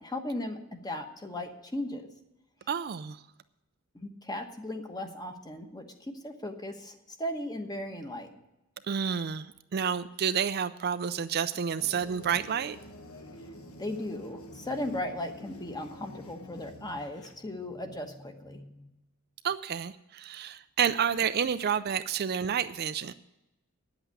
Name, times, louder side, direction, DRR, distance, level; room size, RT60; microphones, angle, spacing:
voice 1, 0.0-2.1 3.9-8.3 13.8-18.9, left 1 dB, 20° left, 6 dB, 1.1 m, -37 dB
voice 2, 2.7-3.2 8.9-12.8 19.4-23.1, right 7 dB, 45° right, 12 dB, 0.4 m, -30 dB
sound 1, 11.8-17.3, left 1 dB, 75° left, 1.4 m, -48 dB
9.5 x 8.0 x 9.0 m, 0.96 s
head